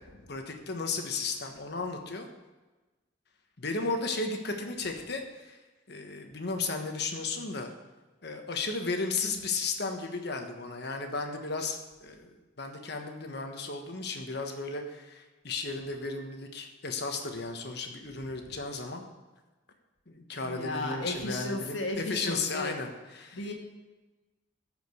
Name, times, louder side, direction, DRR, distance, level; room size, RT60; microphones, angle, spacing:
voice 1, 0.3-2.3 3.6-5.6 5.9-7.7 8.2-19.0 20.1-23.4, left 3 dB, 55° left, 4 dB, 1.3 m, -34 dB
voice 2, 20.4-22.8 23.3-23.5, left 2 dB, 75° left, 2 dB, 1.8 m, -35 dB
14.0 x 5.2 x 6.4 m, 1.2 s
head